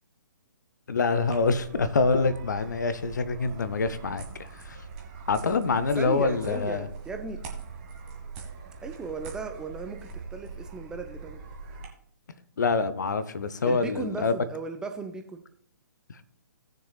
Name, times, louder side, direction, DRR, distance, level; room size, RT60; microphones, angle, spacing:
voice 1, 0.9-4.8 5.3-6.9 12.6-14.4 16.1-16.3, left 4 dB, 60° left, 13 dB, 0.8 m, -26 dB
sound 1, 1.2-11.9, right 4 dB, 25° right, 1.7 m, -42 dB
voice 2, 6.0-7.4 8.8-11.4 13.6-15.4, right 4 dB, 5° right, 5 dB, 0.4 m, -36 dB
18.0 x 6.7 x 2.4 m, 0.65 s
figure-of-eight pair, 130°, 11 cm